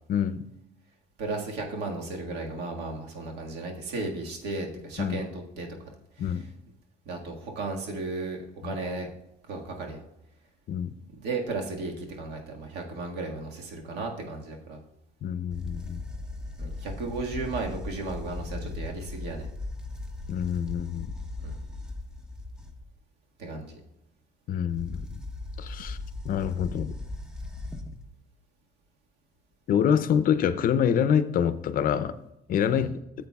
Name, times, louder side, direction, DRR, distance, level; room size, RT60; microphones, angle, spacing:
voice 1, 1.2-5.7 6.2-6.4 7.1-9.1 9.5-10.0 11.2-14.8 16.6-19.5 21.4-21.6 23.4-23.8 32.7-32.9, right 3 dB, 80° right, 1 dB, 1.7 m, -35 dB
voice 2, 15.2-16.0 20.3-21.1 24.5-25.1 25.6-26.0 26.2-26.9 29.7-32.1 32.5-33.0, left 8 dB, 55° left, 13 dB, 0.6 m, -26 dB
sound 1, 15.5-22.9 24.7-28.1, left 2 dB, 5° right, 0.9 m, -38 dB
13.5 x 7.7 x 2.3 m, 0.86 s
cardioid pair, 110°, 17 cm